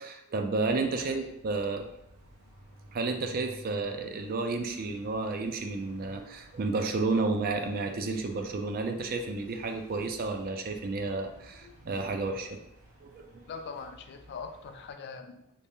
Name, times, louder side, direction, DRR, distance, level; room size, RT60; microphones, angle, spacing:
voice 1, 0.0-1.9 2.9-12.6 13.0-13.5, right 3 dB, 40° right, 5 dB, 0.4 m, -31 dB
sound 1, 0.7-14.9, equal, 80° right, 1.1 m, -54 dB
voice 2, 1.0-1.3 11.6-11.7 13.5-15.7, left 5 dB, 50° left, 6 dB, 0.3 m, -43 dB
3.1 x 2.8 x 3.5 m, 0.78 s
head